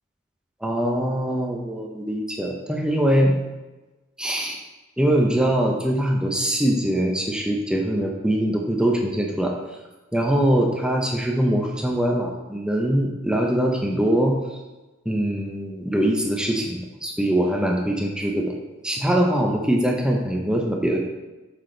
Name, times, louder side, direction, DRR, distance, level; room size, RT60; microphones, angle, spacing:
voice 1, 0.6-3.3 4.2-4.6 5.0-9.6 10.1-14.4 15.1-18.5 18.8-21.0, right 1 dB, 5° right, 0 dB, 0.6 m, -22 dB
5.9 x 4.9 x 3.8 m, 1.1 s
head